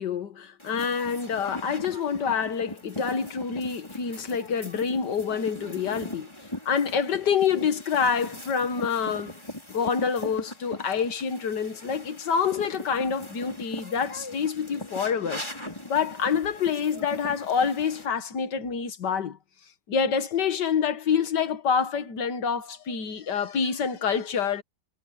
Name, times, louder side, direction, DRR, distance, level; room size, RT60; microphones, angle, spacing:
voice 1, 0.0-6.3 6.7-9.3 9.7-15.4 15.8-19.4 19.9-24.6, left 6 dB, 80° left, 2.1 m, -27 dB
sound 1, 0.6-18.1, left 1 dB, 15° left, 5.3 m, -40 dB
omnidirectional pair, 1.8 m